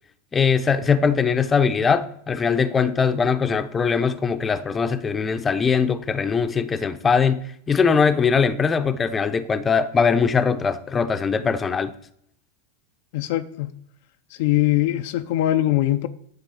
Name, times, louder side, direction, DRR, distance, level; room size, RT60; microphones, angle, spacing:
voice 1, 0.3-11.9, left 6 dB, 20° left, 0.7 m, -21 dB
voice 2, 13.1-13.7 14.3-16.1, left 15 dB, 60° left, 0.5 m, -22 dB
10.5 x 3.8 x 7.1 m
hypercardioid pair, 95°, 0 cm